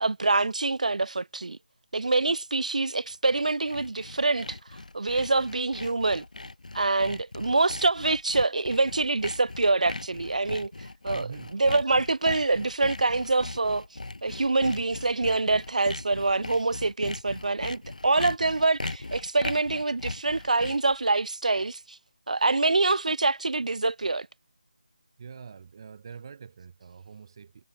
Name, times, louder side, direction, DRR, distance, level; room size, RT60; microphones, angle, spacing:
voice 1, 0.0-1.6 1.9-4.6 4.9-6.2 6.7-10.7 11.0-13.8 14.2-22.0 22.3-24.3, right 3 dB, 60° right, 0.7 m, -25 dB
Sawing, 3.1-21.0, left 2 dB, 60° left, 1.4 m, -39 dB
voice 2, 11.1-11.5 25.2-27.6, right 6 dB, 30° right, 4.1 m, -44 dB
figure-of-eight pair, 160°, 5 cm